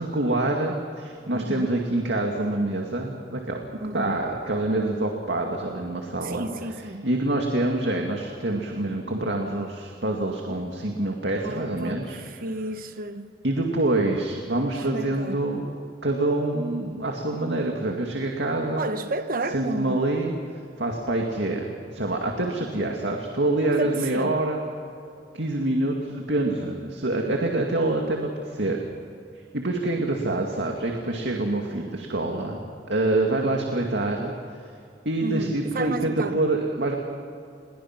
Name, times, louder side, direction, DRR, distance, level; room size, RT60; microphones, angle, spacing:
voice 1, 0.0-3.6 3.9-6.5 7.0-12.2 13.4-15.6 16.0-18.8 19.5-24.6 25.3-28.8 29.5-34.3 35.1-37.0, right 2 dB, 85° right, 2.2 m, -26 dB
voice 2, 1.3-1.7 3.8-4.2 6.2-7.1 11.4-13.3 14.9-15.7 18.7-20.0 23.8-24.4 35.2-36.4, right 2 dB, 55° right, 1.0 m, -32 dB
28.5 x 22.0 x 6.0 m
head